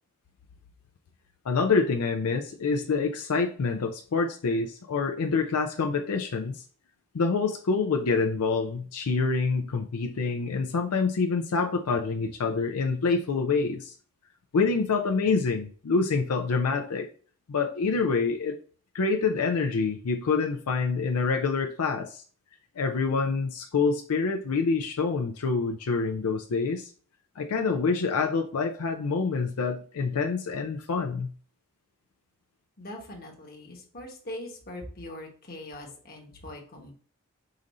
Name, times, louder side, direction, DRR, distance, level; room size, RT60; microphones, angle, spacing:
voice 1, 1.4-6.6 7.1-13.9 14.5-17.1 17.5-18.6 18.9-22.2 22.8-26.9 27.4-31.3, left 4 dB, 90° left, 3 dB, 0.5 m, -26 dB
voice 2, 32.8-36.9, left 1 dB, 45° left, 1 dB, 1.2 m, -41 dB
5.0 x 2.6 x 4.1 m, 0.43 s
head